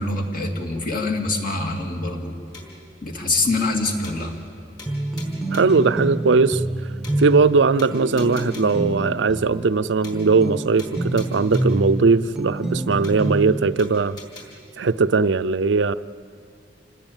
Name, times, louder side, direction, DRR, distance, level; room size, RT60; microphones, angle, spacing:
voice 1, 0.0-2.3 3.0-4.3, left 2 dB, 50° left, 2 dB, 2.7 m, -24 dB
sound 1, 2.5-2.9 3.3-3.4 3.7-3.8 4.0-4.5 4.8-5.8 6.3-6.4 6.7-6.8 7.0-7.5 7.8-8.9 9.3-9.4 9.7-9.8 10.0-10.5 10.8-11.9 12.3-12.4 12.7-12.8 13.0-13.5 13.8-14.5, left 2 dB, 25° left, 5.1 m, -43 dB
sound 2, 4.9-13.7, right 1 dB, 5° right, 1.0 m, -27 dB
voice 2, 5.5-6.6 7.2-14.2 14.8-15.9, right 4 dB, 75° right, 13 dB, 0.5 m, -19 dB
28.0 x 19.5 x 8.9 m, 2.3 s
head